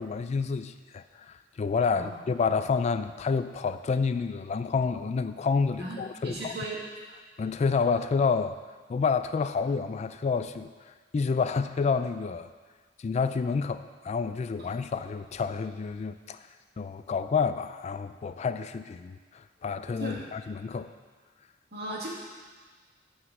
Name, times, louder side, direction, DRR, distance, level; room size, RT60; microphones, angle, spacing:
voice 1, 0.0-6.5 7.4-8.6 8.9-12.5 13.0-16.5 16.8-20.9, left 5 dB, 35° left, 11 dB, 0.3 m, -29 dB
voice 2, 6.2-6.8 20.0-20.2 21.7-22.1, right 1 dB, 60° right, -4 dB, 2.3 m, -36 dB
9.9 x 4.8 x 7.2 m, 1.5 s
head